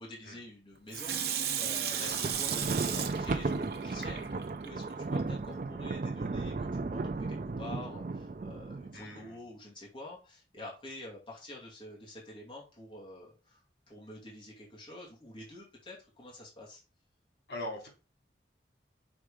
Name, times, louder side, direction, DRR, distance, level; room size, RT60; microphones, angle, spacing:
voice 1, 0.0-16.8, left 2 dB, 30° left, -4 dB, 2.5 m, -48 dB
Water tap faucet / Sink (filling or washing), 0.9-4.7 5.2-5.3, right 8 dB, 65° right, 1.0 m, -35 dB
Thunder, 1.9-9.2, right 3 dB, 45° right, 0.4 m, -35 dB
voice 2, 8.9-9.4 17.5-17.9, left 1 dB, 85° left, -1 dB, 3.7 m, -41 dB
6.3 x 4.5 x 5.0 m, 0.32 s
head